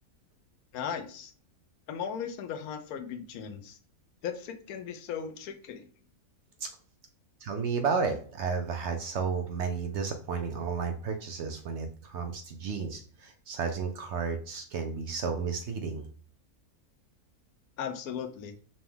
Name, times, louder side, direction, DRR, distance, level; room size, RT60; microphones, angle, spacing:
voice 1, 0.7-1.3 1.9-3.8 4.2-5.9 17.8-18.6, left 7 dB, 85° left, 6 dB, 1.1 m, -37 dB
voice 2, 7.4-16.0, right 5 dB, 65° right, 6 dB, 0.7 m, -32 dB
5.1 x 2.3 x 3.4 m, 0.42 s
omnidirectional pair, 1.5 m